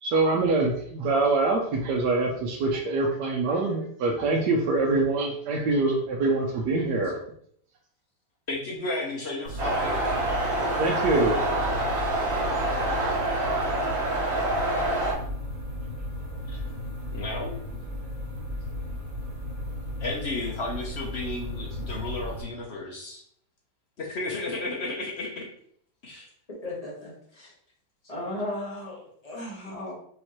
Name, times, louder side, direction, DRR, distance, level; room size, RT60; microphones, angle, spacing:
voice 1, 0.0-7.2 10.8-11.7 12.9-13.1, right 3 dB, 70° right, 0 dB, 1.1 m, -25 dB
voice 2, 8.5-10.0 12.7-12.8 16.5-16.6 17.1-17.5 20.0-23.2 24.0-25.5 26.0-26.3 29.7-29.8, left 2 dB, 65° left, -1 dB, 0.6 m, -33 dB
sound 1, 9.4-22.4, left 1 dB, 85° right, 1.9 m, -35 dB
sound 2, 9.6-15.1, right 1 dB, 50° right, 1.3 m, -27 dB
voice 3, 26.6-27.5 28.1-29.9, left 1 dB, 25° left, -4 dB, 1.1 m, -36 dB
4.9 x 3.1 x 3.0 m, 0.64 s
omnidirectional pair, 2.0 m